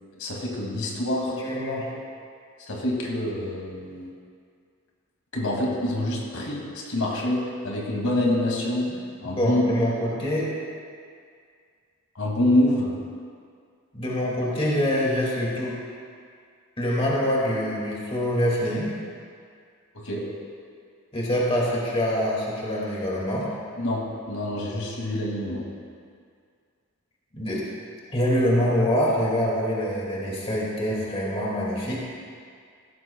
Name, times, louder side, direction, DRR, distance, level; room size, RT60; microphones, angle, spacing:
voice 1, 0.2-1.4 2.7-4.1 5.3-8.9 9.2-10.0 12.2-12.9 20.0-20.2 23.8-25.7, left 1 dB, 85° left, -2 dB, 2.3 m, -26 dB
voice 2, 1.4-1.9 8.9-9.0 9.2-10.5 13.9-15.7 16.8-18.9 21.1-23.5 27.3-27.6 28.1-32.0, equal, 25° left, -5 dB, 2.1 m, -25 dB
16.0 x 14.0 x 2.3 m, 2.2 s
head